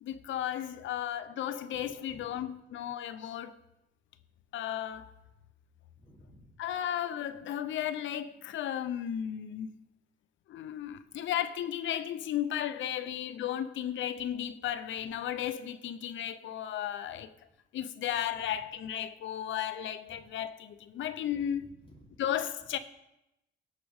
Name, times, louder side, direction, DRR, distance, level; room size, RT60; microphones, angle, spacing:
voice 1, 0.0-3.6 4.5-5.1 6.6-9.7 10.5-17.3 17.7-21.7 22.2-22.8, left 10 dB, 75° left, 0.8 m, -34 dB
voice 2, 1.7-2.4 6.0-6.5 18.4-18.5 20.1-20.2 21.3-22.2, left 1 dB, 25° left, 3.1 m, -56 dB
17.0 x 8.4 x 3.6 m
cardioid pair, 90°, 20 cm